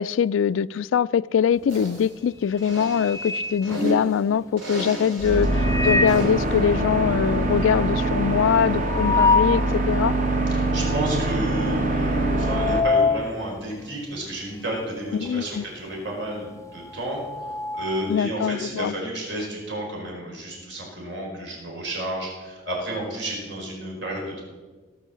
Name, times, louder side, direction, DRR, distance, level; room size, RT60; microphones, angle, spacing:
voice 1, 0.0-10.1 15.1-15.6 18.1-18.9, left 7 dB, 85° left, 0.3 m, -23 dB
sound 1, 1.6-2.0 2.4-4.4 5.4-6.4 6.8-6.9 7.1-7.2 7.6-9.7 10.2-10.3 11.1-11.4 11.7-15.0 15.3-18.2, left 4 dB, 15° left, 0.4 m, -26 dB
sound 2, 1.7-2.1 2.6-4.1 4.6-5.5 6.1-6.5, right 1 dB, 85° right, 3.8 m, -32 dB
sound 3, 5.2-12.8, right 2 dB, 40° right, 1.5 m, -24 dB
voice 2, 10.5-17.5 17.7-24.4, right 1 dB, 65° right, 4.7 m, -31 dB
18.0 x 6.3 x 7.3 m
head